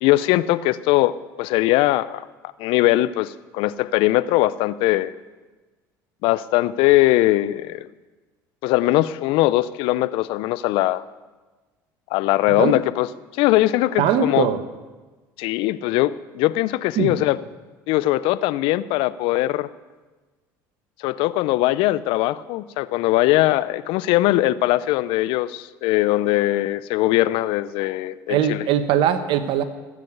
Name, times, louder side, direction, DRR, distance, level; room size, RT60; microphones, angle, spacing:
voice 1, 0.0-2.3 2.6-5.1 6.2-7.9 8.6-11.0 12.1-13.1 13.4-14.5 15.4-17.4 17.9-19.7 21.0-28.6, left 16 dB, 70° left, 17 dB, 0.6 m, -20 dB
voice 2, 14.0-14.6 17.0-17.1 28.3-29.6, right 9 dB, 60° right, 10 dB, 1.3 m, -20 dB
15.5 x 7.6 x 7.9 m, 1.3 s
hypercardioid pair, 70°, 9 cm